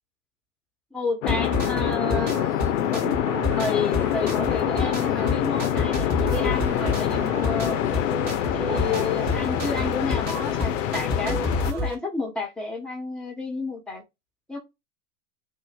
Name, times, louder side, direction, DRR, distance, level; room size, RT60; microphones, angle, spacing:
voice 1, 0.9-2.4 2.9-3.2 3.6-8.2 8.5-11.4 11.7-14.0 14.5-14.6, left 3 dB, ahead, 1.1 m, -31 dB
Long Noisy Pitched Woosh, 1.2-11.7, left 11 dB, 55° left, 0.5 m, -26 dB
sound 1, 1.3-11.9, left 2 dB, 35° right, 1.9 m, -30 dB
3.4 x 2.6 x 3.4 m
figure-of-eight pair, 90°, 47 cm